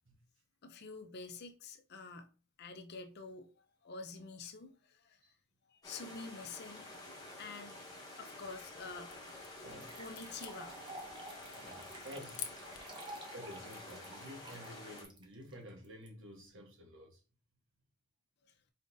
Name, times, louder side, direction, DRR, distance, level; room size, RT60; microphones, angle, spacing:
voice 1, 0.6-2.3 2.6-5.2 5.7-6.9 7.4-7.9 8.2-9.4 9.9-10.9 11.8-11.9, left 4 dB, 45° left, 0.5 m, -48 dB
sound 1, 5.8-15.0, left 2 dB, 15° left, 1.0 m, -50 dB
sound 2, 8.3-13.0, left 9 dB, 85° left, 0.7 m, -51 dB
sound 3, 9.1-9.2 9.8-16.1, right 2 dB, 20° right, 0.7 m, -51 dB
voice 2, 9.5-10.0 11.6-12.5 13.3-17.2, equal, 60° right, 1.2 m, -51 dB
4.2 x 3.8 x 2.6 m
head